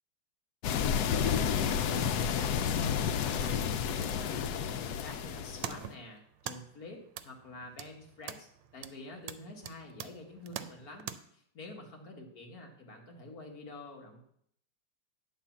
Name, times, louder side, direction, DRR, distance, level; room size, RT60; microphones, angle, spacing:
sound 1, 0.6-5.9, left 8 dB, 80° left, 0.8 m, -31 dB
voice 1, 1.1-3.6 3.9-14.2, left 1 dB, 45° left, 1 dB, 1.8 m, -47 dB
sound 2, 5.3-11.2, right 10 dB, 85° right, 1.5 m, -45 dB
10.0 x 4.1 x 7.1 m, 0.68 s
omnidirectional pair, 2.3 m